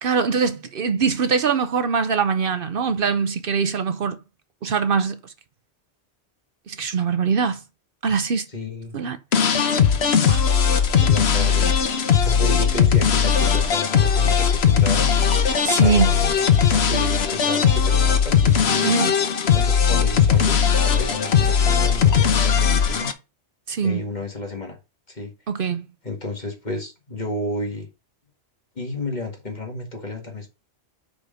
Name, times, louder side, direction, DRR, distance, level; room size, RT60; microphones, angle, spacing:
voice 1, 0.0-4.2 4.6-5.3 6.7-7.6 8.0-8.5 8.9-9.2 10.2-10.5 15.6-16.1 18.8-19.1 23.7-24.0 25.5-25.9, right 5 dB, 60° right, 0.9 m, -22 dB
voice 2, 8.5-9.0 11.0-11.7 12.2-15.1 15.8-19.0 19.5-23.1 23.8-24.8 25.1-25.3 26.0-27.9 28.8-30.5, left 2 dB, 45° left, 2.0 m, -32 dB
sound 1, 9.3-23.1, left 7 dB, 75° left, 1.1 m, -18 dB
5.3 x 5.0 x 6.3 m
omnidirectional pair, 1.1 m